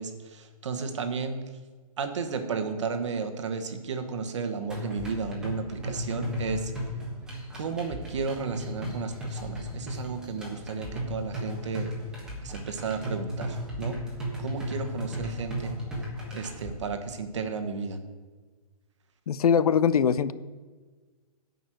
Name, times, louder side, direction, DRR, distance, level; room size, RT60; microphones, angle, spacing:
voice 1, 0.0-1.5 2.0-6.7 7.5-11.9 12.4-14.0 14.4-15.8 16.3-18.0, right 5 dB, 50° right, 7 dB, 1.2 m, -33 dB
sound 1, 4.7-16.7, left 1 dB, 5° right, 1.3 m, -35 dB
voice 2, 19.3-20.3, left 7 dB, 70° left, 16 dB, 0.6 m, -22 dB
11.0 x 5.4 x 7.6 m, 1.4 s
hypercardioid pair, 180°, 20 cm